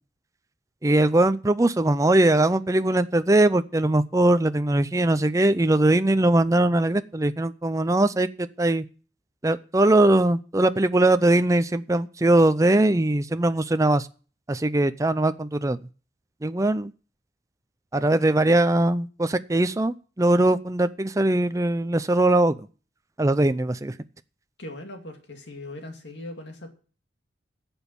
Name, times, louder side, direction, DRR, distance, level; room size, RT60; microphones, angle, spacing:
voice 1, 0.8-8.8 9.4-14.1 14.5-15.8 16.4-16.9 17.9-22.7 23.2-23.9, right 1 dB, 15° right, 11 dB, 0.5 m, -21 dB
voice 2, 24.6-26.7, left 1 dB, 70° left, 4 dB, 2.3 m, -39 dB
10.5 x 7.2 x 6.9 m, 0.37 s
head